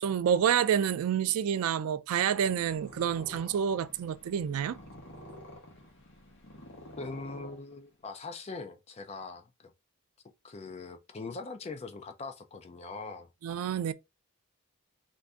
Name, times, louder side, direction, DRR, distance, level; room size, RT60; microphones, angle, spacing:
voice 1, 0.0-4.8 13.4-13.9, right 8 dB, 75° right, 0.3 m, -28 dB
Purr, 2.5-8.1, left 1 dB, 50° left, 1.0 m, -49 dB
voice 2, 7.0-9.7 10.4-13.3, left 3 dB, 30° left, 0.4 m, -42 dB
2.6 x 2.5 x 3.3 m
head